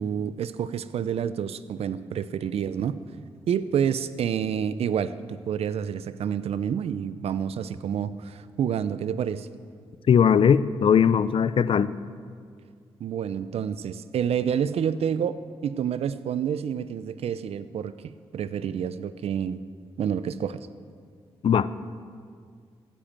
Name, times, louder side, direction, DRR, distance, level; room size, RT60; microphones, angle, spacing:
voice 1, 0.0-3.0 3.5-9.5 13.0-18.0 18.3-19.6 20.0-20.6, right 8 dB, 75° right, 15 dB, 0.6 m, -28 dB
voice 2, 10.1-11.9 21.4-21.7, left 7 dB, 60° left, 16 dB, 0.5 m, -19 dB
15.5 x 10.0 x 7.4 m, 2.1 s
cardioid pair, 65°, 10 cm